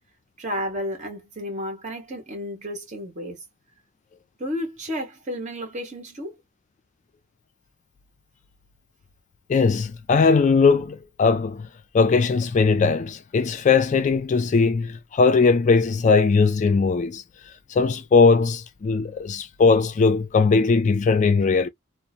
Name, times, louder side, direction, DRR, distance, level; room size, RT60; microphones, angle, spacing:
voice 1, 0.4-3.4 4.4-6.4, equal, 40° right, 1.3 m, -32 dB
voice 2, 9.5-11.7 11.9-17.2 17.7-21.7, left 4 dB, 40° left, 0.3 m, -19 dB
2.8 x 2.0 x 2.4 m
head